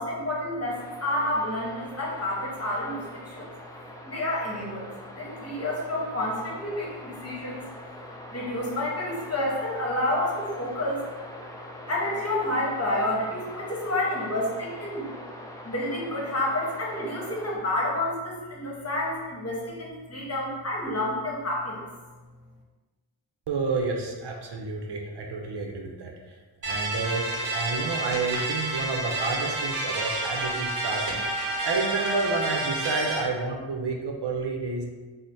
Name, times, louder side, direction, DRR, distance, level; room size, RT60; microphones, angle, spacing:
voice 1, 0.0-3.5 4.0-7.7 8.3-11.0 11.9-15.1 15.6-21.8, left 1 dB, 35° left, -4 dB, 1.0 m, -29 dB
sound 1, 0.7-17.6, left 1 dB, 10° left, 0.4 m, -43 dB
voice 2, 23.5-26.1 26.6-31.2 31.6-34.8, right 3 dB, 70° right, 1 dB, 0.6 m, -30 dB
sound 2, 26.6-33.2, right 2 dB, 45° right, 1.1 m, -29 dB
3.2 x 2.1 x 4.1 m, 1.3 s
wide cardioid pair, 70°, 43 cm